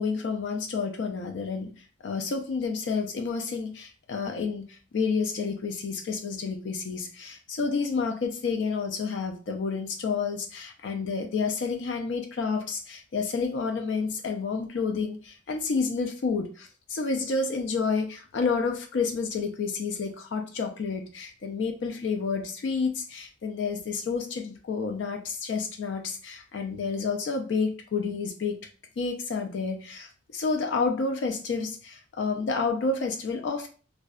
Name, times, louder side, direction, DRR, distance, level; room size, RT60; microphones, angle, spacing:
voice 1, 0.0-1.7 2.0-28.6 29.0-33.7, left 4 dB, 85° left, 5 dB, 0.4 m, -30 dB
2.5 x 2.1 x 2.3 m, 0.37 s
head